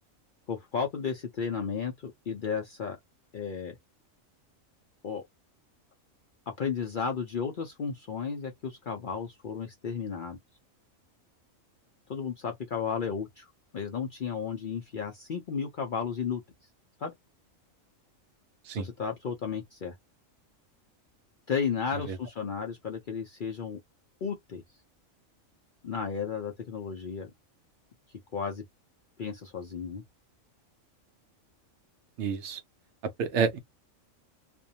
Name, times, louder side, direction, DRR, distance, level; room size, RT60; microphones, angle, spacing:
voice 1, 0.5-3.0 3.3-3.8 5.0-5.2 6.6-10.4 12.1-16.4 17.0-17.1 18.7-20.0 21.5-23.8 24.2-24.6 25.8-27.3 28.3-28.6 29.2-30.0, left 6 dB, 55° left, 0.6 m, -33 dB
voice 2, 32.2-32.6 33.2-33.6, right 6 dB, 70° right, 0.8 m, -29 dB
2.5 x 2.1 x 2.7 m
omnidirectional pair, 1.4 m